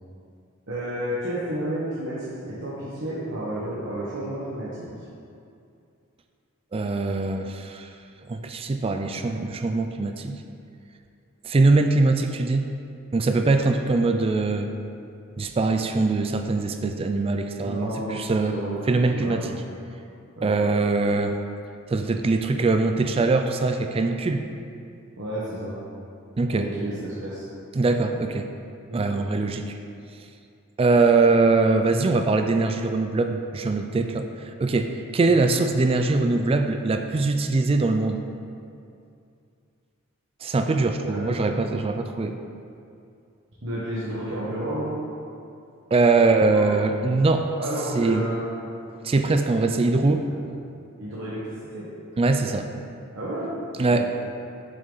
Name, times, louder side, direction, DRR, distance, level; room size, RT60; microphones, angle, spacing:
voice 1, 0.7-4.9 17.6-18.2 18.5-19.4 20.4-20.5 25.2-25.7 26.5-27.4 28.9-29.0 35.2-35.4 41.0-41.4 43.6-44.9 46.2-46.7 47.6-48.7 50.3-50.4 51.0-51.9 53.1-53.5 53.7-54.0, right 1 dB, 60° right, -9 dB, 1.3 m, -31 dB
voice 2, 6.7-7.9 8.3-10.4 11.4-12.7 13.1-14.7 15.4-18.6 18.9-19.5 20.4-21.4 21.9-24.4 26.4-26.7 27.8-28.5 28.9-29.7 30.8-34.3 34.6-38.2 40.4-42.4 45.9-47.5 47.9-48.3 49.0-50.2 52.2-52.7 53.8-54.1, right 3 dB, 25° right, 6 dB, 0.3 m, -22 dB
7.2 x 6.6 x 4.0 m, 2.5 s
head